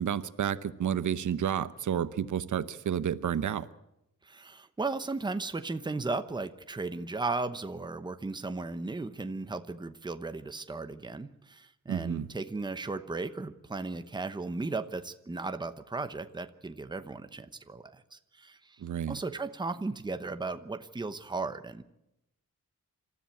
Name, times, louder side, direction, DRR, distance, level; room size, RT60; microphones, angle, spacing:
voice 1, 0.0-3.7 11.9-12.3 18.8-19.2, right 9 dB, 70° right, 14 dB, 0.9 m, -30 dB
voice 2, 4.2-18.8 19.1-21.8, right 3 dB, 15° right, 9 dB, 0.9 m, -36 dB
27.0 x 13.5 x 8.5 m, 0.86 s
wide cardioid pair, 175°, 31 cm